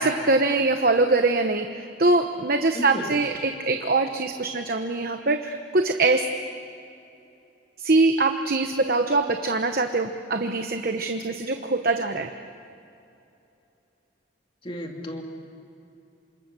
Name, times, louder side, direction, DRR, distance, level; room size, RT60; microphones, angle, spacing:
voice 1, 0.0-6.2 7.8-12.3, right 3 dB, 50° right, 6 dB, 1.0 m, -23 dB
voice 2, 2.7-3.1 14.6-15.2, equal, 25° left, 2 dB, 2.7 m, -33 dB
28.5 x 26.5 x 6.9 m, 2.7 s
head